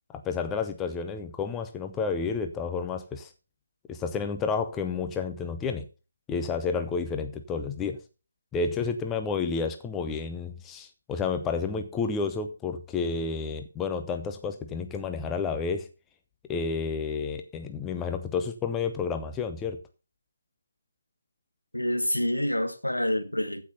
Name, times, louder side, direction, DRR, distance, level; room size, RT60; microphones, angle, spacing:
voice 1, 0.1-3.3 3.9-5.9 6.3-8.0 8.5-15.9 16.5-19.8, left 5 dB, 10° left, 0.8 m, -30 dB
voice 2, 21.7-23.6, left 1 dB, 85° left, 1.9 m, -27 dB
14.5 x 5.8 x 5.6 m
figure-of-eight pair, 150°, 0 cm